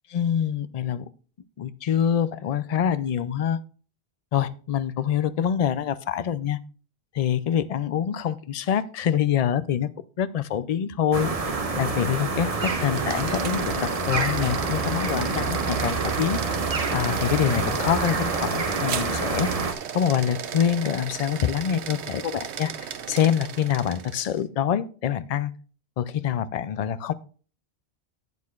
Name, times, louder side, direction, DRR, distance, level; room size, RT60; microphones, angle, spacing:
voice 1, 0.1-1.0 1.6-3.6 4.3-6.6 7.1-9.9 10.2-11.3 11.8-16.4 16.9-19.5 19.9-25.5 26.0-27.1, left 9 dB, 55° left, 0.4 m, -25 dB
sound 1, 11.1-19.7, right 4 dB, 35° right, 0.9 m, -27 dB
sound 2, 12.7-24.4, right 8 dB, 80° right, 1.0 m, -36 dB
12.0 x 8.6 x 2.4 m
omnidirectional pair, 1.1 m